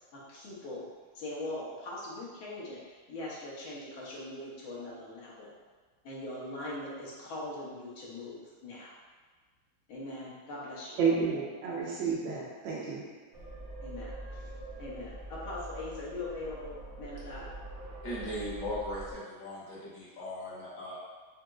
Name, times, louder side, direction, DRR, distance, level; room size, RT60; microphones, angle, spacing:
voice 1, 0.1-0.9 1.2-5.5 6.0-8.9 9.9-11.0 13.8-14.5 14.8-17.5, left 2 dB, 80° left, -6 dB, 1.7 m, -41 dB
voice 2, 11.0-13.0, right 5 dB, 75° right, -5 dB, 1.3 m, -30 dB
sound 1, 13.3-19.1, right 2 dB, 50° right, 0.8 m, -44 dB
voice 3, 18.0-21.0, left 1 dB, 65° left, -7 dB, 1.6 m, -38 dB
4.8 x 2.9 x 2.3 m, 1.4 s
omnidirectional pair, 2.2 m